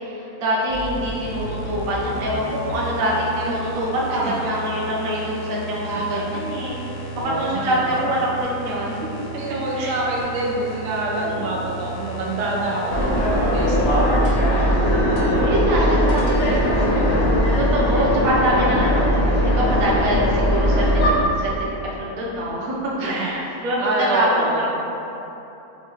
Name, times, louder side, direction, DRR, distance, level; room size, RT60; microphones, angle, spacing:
voice 1, 0.0-9.3 9.8-9.9 11.2-11.6 13.3-13.4 14.9-16.3 17.6-20.8 21.4-21.5 21.8-22.7 23.0-23.8 24.1-24.3 24.5-24.7, equal, 55° right, -5 dB, 0.7 m, -25 dB
sound 1, 0.7-17.8, right 2 dB, 80° left, 1.2 m, -34 dB
voice 2, 5.8-6.2 6.6-8.1 9.3-14.4 15.4-16.8 23.0-23.3 23.8-24.7, right 2 dB, 90° right, -3 dB, 1.3 m, -27 dB
sound 2, 12.9-21.1, equal, 60° left, 0.7 m, -19 dB
5.4 x 2.3 x 3.0 m, 3.0 s
omnidirectional pair, 1.7 m